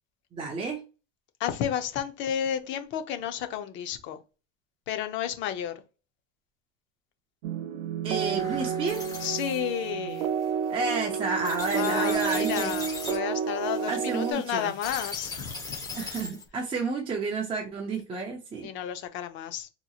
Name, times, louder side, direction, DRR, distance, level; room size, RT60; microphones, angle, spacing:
voice 1, 0.3-0.8 8.0-9.1 10.7-12.8 13.9-14.7 15.9-18.7, right 4 dB, 15° right, 0.5 m, -31 dB
voice 2, 1.4-4.2 4.9-5.7 9.2-10.3 11.7-16.0 18.6-19.7, left 10 dB, 35° left, 0.5 m, -32 dB
sound 1, 7.4-14.3, right 7 dB, 85° right, 0.5 m, -30 dB
sound 2, 8.4-16.5, left 3 dB, 10° left, 1.0 m, -40 dB
4.0 x 2.9 x 2.3 m
cardioid pair, 165°, 34 cm